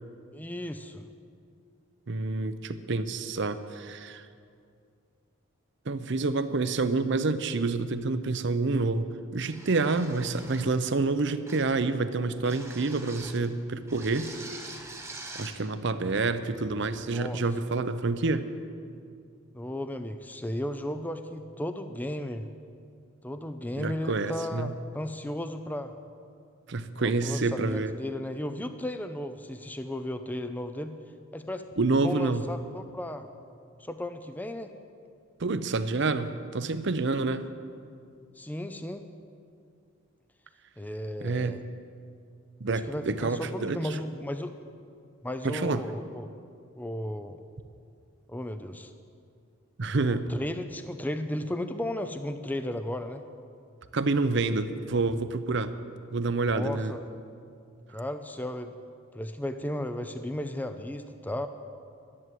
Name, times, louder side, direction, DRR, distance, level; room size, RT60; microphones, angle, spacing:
voice 1, 0.3-1.1 17.1-17.4 19.5-22.5 23.2-25.9 27.0-30.9 31.3-31.6 31.9-33.3 33.8-34.7 38.4-39.0 40.8-41.6 42.7-44.6 45.2-46.3 46.8-47.4 48.3-48.9 50.1-53.2 56.5-57.1 57.9-58.8 59.1-61.5, left 1 dB, 10° left, 9 dB, 0.5 m, -35 dB
voice 2, 2.1-4.2 5.9-9.1 9.3-14.3 15.3-18.5 23.8-24.7 26.7-27.9 31.8-32.4 35.4-37.4 41.2-41.6 42.6-43.8 45.4-45.8 49.8-50.2 53.9-55.7 56.1-56.9, right 3 dB, 60° right, 12 dB, 0.7 m, -28 dB
sound 1, 9.5-10.8 11.5-11.8 12.4-13.4 13.9-15.6, right 2 dB, 15° right, 1.3 m, -44 dB
12.0 x 11.0 x 7.7 m, 2.4 s
head